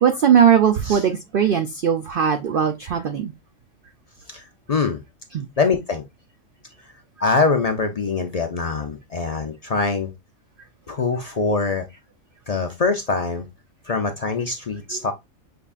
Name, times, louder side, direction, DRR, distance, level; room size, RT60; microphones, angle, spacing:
voice 1, 0.0-3.3 5.3-5.4, right 8 dB, 65° right, 0.5 m, -19 dB
voice 2, 4.3-5.0 5.6-6.0 7.2-10.1 10.9-11.9 12.5-13.4 13.9-15.1, left 4 dB, 75° left, 0.3 m, -23 dB
5.7 x 3.5 x 2.3 m
omnidirectional pair, 1.4 m